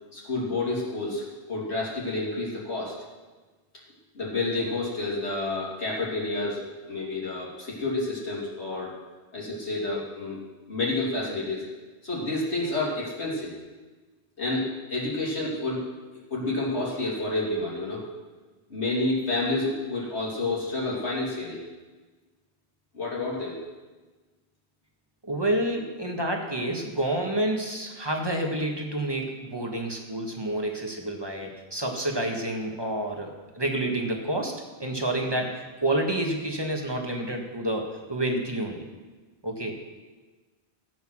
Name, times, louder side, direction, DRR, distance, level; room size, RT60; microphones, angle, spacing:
voice 1, 0.1-2.9 4.1-8.9 9.3-10.4 10.7-11.6 12.0-13.5 14.4-15.8 16.3-18.0 18.7-21.6 22.9-23.6, left 2 dB, 80° left, -6 dB, 3.1 m, -29 dB
voice 2, 25.2-38.9 39.4-39.8, right 1 dB, 25° right, 2 dB, 1.6 m, -29 dB
15.5 x 8.1 x 6.3 m, 1.3 s
omnidirectional pair, 1.1 m